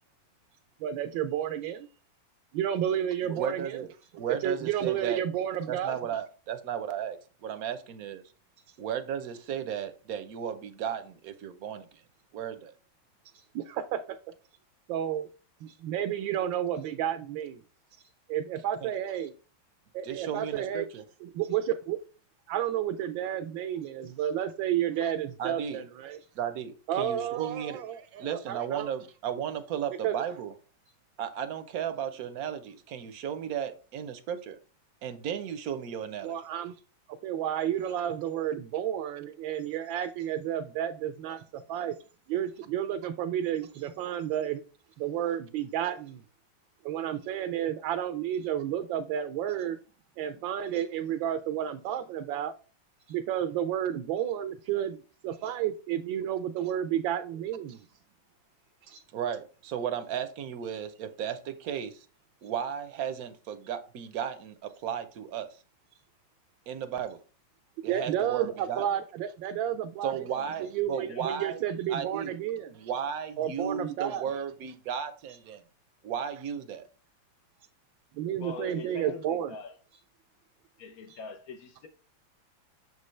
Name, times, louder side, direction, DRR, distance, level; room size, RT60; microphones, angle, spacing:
voice 1, 0.8-1.9 2.5-3.8 4.3-6.0 13.3-14.2 14.9-15.3 15.6-17.6 18.3-19.3 19.9-20.9 21.2-22.0 22.5-26.2 26.9-28.9 30.0-30.2 36.2-36.8 37.2-41.9 42.3-44.6 45.0-46.2 46.8-49.8 50.2-52.5 53.1-57.9 58.8-59.0 67.8-70.2 70.6-72.7 73.4-74.3 78.1-79.5 81.1-81.2, right 10 dB, 80° right, 1.3 m, -31 dB
voice 2, 3.2-5.2 5.7-8.2 8.8-12.0 12.3-12.7 18.8-18.9 20.0-21.0 25.4-25.8 26.3-30.5 31.2-34.6 35.0-36.3 59.1-62.1 62.4-65.5 66.7-67.2 67.8-68.9 70.0-71.6 71.9-72.4 72.7-75.6 76.0-76.9, right 8 dB, 65° right, 1.0 m, -35 dB
voice 3, 78.4-79.8 80.8-81.9, left 4 dB, 65° left, 1.0 m, -43 dB
6.8 x 5.3 x 3.2 m
omnidirectional pair, 2.1 m